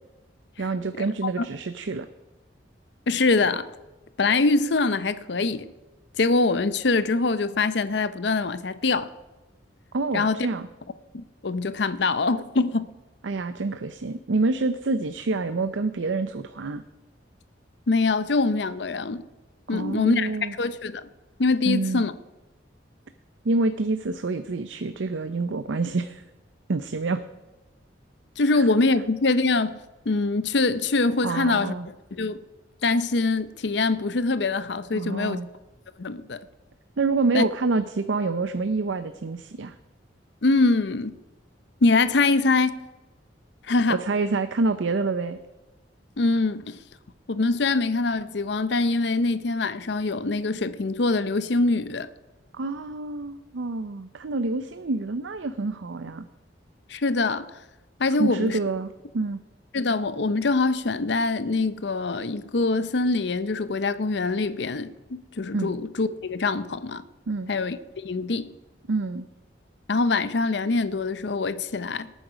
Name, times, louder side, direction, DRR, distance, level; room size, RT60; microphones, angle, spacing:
voice 1, 0.6-2.1 9.9-10.7 13.2-16.8 19.7-20.5 21.6-22.0 23.4-26.2 26.7-27.2 28.5-28.7 31.2-31.9 34.9-35.5 37.0-39.8 43.9-45.4 52.5-56.3 58.2-59.4 65.5-65.7 67.3-67.5 68.9-69.2, right 3 dB, 85° right, 0.6 m, -27 dB
voice 2, 3.1-3.7 4.2-5.7 6.2-9.1 10.1-10.5 11.1-12.9 17.9-19.2 19.7-21.1 21.4-22.1 28.4-29.8 30.1-31.7 32.1-32.4 32.8-35.4 36.0-36.4 37.3-37.4 40.4-41.2 41.8-42.8 43.6-44.0 46.2-46.8 47.3-52.1 56.9-57.5 58.0-58.6 59.7-67.0 67.5-68.5 69.9-72.1, left 3 dB, 65° left, 0.6 m, -24 dB
18.5 x 9.2 x 5.0 m
head